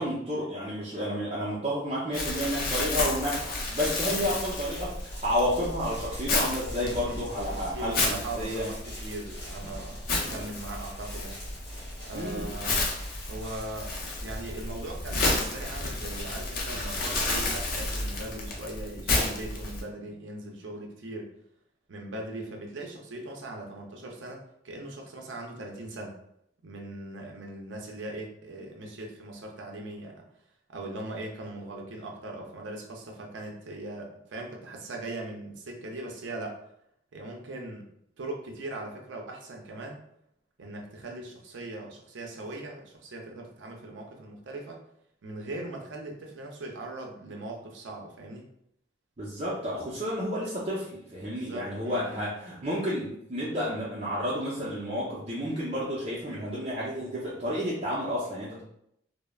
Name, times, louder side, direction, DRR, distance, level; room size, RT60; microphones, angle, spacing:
voice 1, 0.0-8.6 10.2-10.4 12.1-12.5 49.2-58.6, equal, 35° right, -8 dB, 0.5 m, -31 dB
Crumpling crinkling, 2.1-19.8, left 2 dB, 50° left, 0.5 m, -32 dB
sound 1, 2.8-17.8, left 1 dB, 25° left, 1.2 m, -47 dB
voice 2, 6.8-7.2 7.5-11.4 12.0-12.8 13.3-13.9 14.2-21.3 21.9-26.2 26.6-30.2 30.7-36.6 37.1-37.9 38.2-40.0 40.6-44.8 45.2-48.5 51.2-52.2, right 2 dB, 85° right, 1 dB, 0.5 m, -40 dB
3.1 x 2.0 x 2.3 m, 0.74 s
head